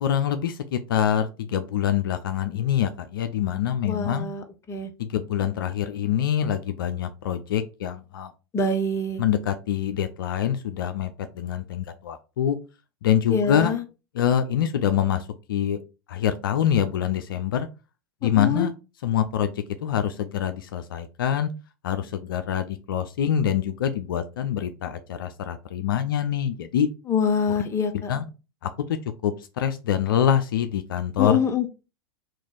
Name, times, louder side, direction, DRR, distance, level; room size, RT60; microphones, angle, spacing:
voice 1, 0.0-4.3 5.0-8.3 9.2-12.6 13.0-13.7 14.1-15.8 16.1-17.7 18.2-18.7 19.0-21.5 21.8-26.9 28.1-28.2 28.6-29.0 29.2-31.4, left 9 dB, 70° left, 10 dB, 0.4 m, -25 dB
voice 2, 3.8-4.9 8.5-9.2 13.3-13.8 18.2-18.7 27.1-28.1 31.2-31.7, left 4 dB, 25° left, 7 dB, 0.6 m, -25 dB
3.0 x 2.4 x 3.7 m, 0.30 s
hypercardioid pair, 95°, 12 cm